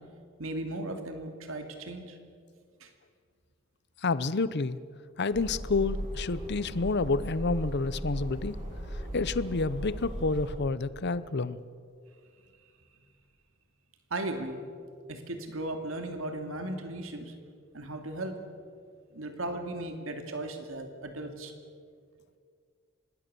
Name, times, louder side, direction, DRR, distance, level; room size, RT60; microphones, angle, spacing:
voice 1, 0.4-2.2 2.8-2.9 14.1-14.6 15.1-17.4 17.7-18.4 19.1-21.5, right 1 dB, 80° right, 5 dB, 2.5 m, -36 dB
voice 2, 4.0-4.8 5.2-8.6 8.9-11.6, left 3 dB, 55° left, 16 dB, 0.8 m, -29 dB
sound 1, 5.3-10.5, equal, 40° right, 6.4 m, -37 dB
25.5 x 20.0 x 6.9 m, 2.2 s
head